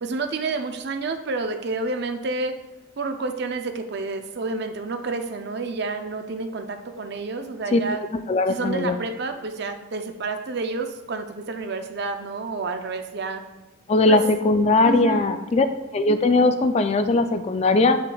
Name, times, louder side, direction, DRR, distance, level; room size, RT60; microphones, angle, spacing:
voice 1, 0.0-2.5 3.0-8.0 8.5-13.4 14.1-14.2 14.8-15.4, right 3 dB, 50° right, 6 dB, 0.5 m, -29 dB
voice 2, 8.3-9.0 13.9-15.7 15.9-18.0, left 2 dB, 30° left, 9 dB, 0.3 m, -19 dB
7.7 x 5.7 x 2.3 m, 1.1 s
head